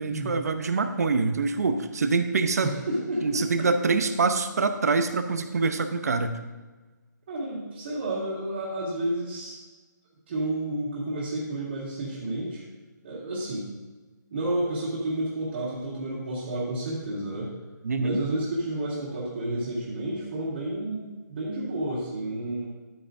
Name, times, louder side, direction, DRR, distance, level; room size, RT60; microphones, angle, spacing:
voice 1, 0.0-2.7 3.2-6.4 17.8-18.2, right 4 dB, 50° right, 8 dB, 0.8 m, -25 dB
voice 2, 2.6-3.9 7.3-9.6 10.3-12.6 13.0-13.7 14.3-17.5 18.0-22.7, right 1 dB, 30° right, -9 dB, 2.3 m, -31 dB
12.5 x 8.9 x 2.6 m, 1.3 s
hypercardioid pair, 175°, 11 cm